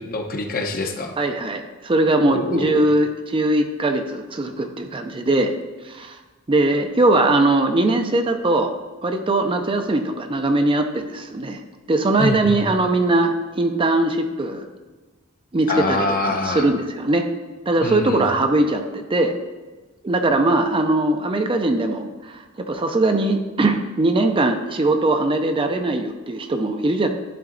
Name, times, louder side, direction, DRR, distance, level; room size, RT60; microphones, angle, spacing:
voice 1, 0.0-1.2 2.2-2.8 12.2-12.6 15.7-16.7 17.8-18.3, left 2 dB, 45° left, 4 dB, 0.8 m, -25 dB
voice 2, 1.2-5.5 5.8-6.2 6.5-8.7 9.0-11.6 11.9-14.6 15.5-17.2 17.7-19.3 20.0-27.1, right 2 dB, 25° right, 6 dB, 0.5 m, -20 dB
11.0 x 3.9 x 3.8 m, 1.3 s
head